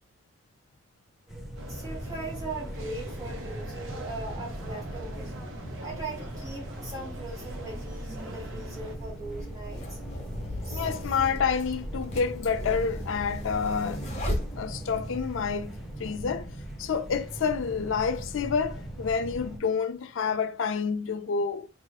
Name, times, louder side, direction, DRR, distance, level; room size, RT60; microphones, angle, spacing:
sound 1, 1.3-19.6, equal, ahead, 0.7 m, -39 dB
sound 2, 1.6-9.0, right 1 dB, 85° right, 1.0 m, -43 dB
voice 1, 1.7-5.3 5.8-10.0 10.6-10.9, right 3 dB, 15° right, 2.1 m, -40 dB
sound 3, 7.7-7.8 8.7-15.1, equal, 35° left, 1.2 m, -37 dB
voice 2, 10.7-14.1 14.6-16.5 16.8-21.7, left 6 dB, 75° left, 0.4 m, -28 dB
4.5 x 3.0 x 2.3 m
head